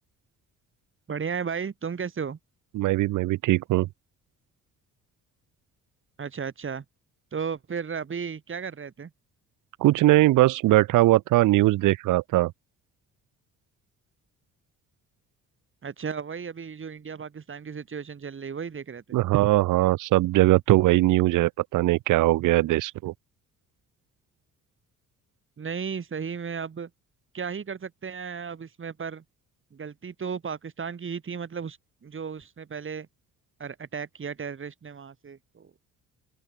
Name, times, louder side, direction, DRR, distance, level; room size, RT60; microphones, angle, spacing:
voice 1, 1.1-2.4 6.2-6.8 7.3-9.1 15.8-19.2 25.6-26.9 27.3-29.2 29.7-33.1 33.6-35.7, right 6 dB, 40° right, 7.2 m, -34 dB
voice 2, 2.7-3.9 9.8-12.5 19.1-23.1, right 17 dB, 85° right, 1.0 m, -21 dB
open air
cardioid pair, 90°, 30 cm